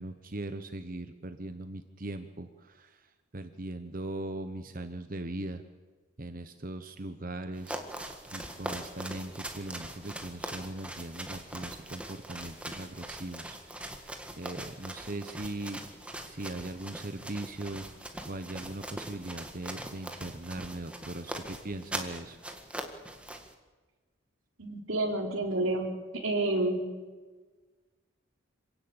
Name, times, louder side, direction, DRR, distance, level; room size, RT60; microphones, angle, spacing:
voice 1, 0.0-2.9 3.3-5.6 6.2-7.8 8.3-14.1 14.4-15.8 16.3-17.9 18.3-22.4, right 2 dB, 40° right, 9 dB, 1.0 m, -39 dB
sound 1, 7.5-23.5, right 1 dB, 5° right, 1.7 m, -42 dB
voice 2, 24.6-25.9 26.2-26.8, right 2 dB, 70° right, 1 dB, 4.2 m, -29 dB
26.5 x 17.0 x 8.8 m, 1.4 s
head